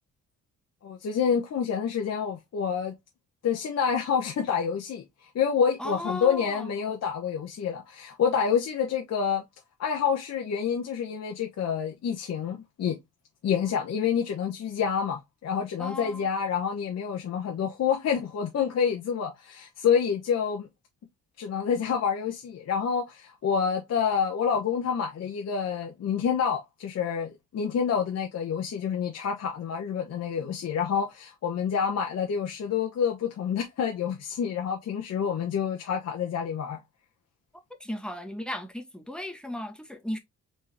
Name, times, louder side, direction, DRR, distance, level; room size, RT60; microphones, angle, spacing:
voice 1, 0.8-2.9 3.4-5.0 5.3-9.4 9.8-13.0 13.4-20.7 21.4-36.8, left 7 dB, 55° left, 1.2 m, -28 dB
voice 2, 5.8-6.7 15.8-16.3 37.8-40.2, left 1 dB, 5° left, 1.3 m, -36 dB
4.3 x 3.4 x 3.3 m
cardioid pair, 90°, 30 cm